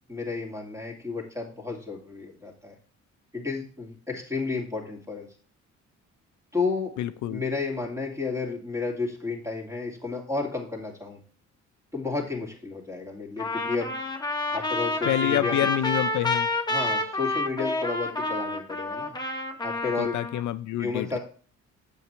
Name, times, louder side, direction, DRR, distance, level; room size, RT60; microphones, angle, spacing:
voice 1, 0.1-2.8 3.3-5.3 6.5-6.9 7.3-11.2 11.9-13.9 14.5-15.7 16.7-19.1 19.6-20.2 20.8-21.2, left 4 dB, 10° right, 1 dB, 2.5 m, -32 dB
voice 2, 7.0-7.4 15.0-16.5 20.0-21.2, left 13 dB, 75° left, 12 dB, 0.5 m, -27 dB
Trumpet, 13.4-20.4, left 2 dB, 15° left, 1.2 m, -29 dB
7.9 x 5.7 x 4.5 m, 0.42 s
cardioid pair, 90°, 30 cm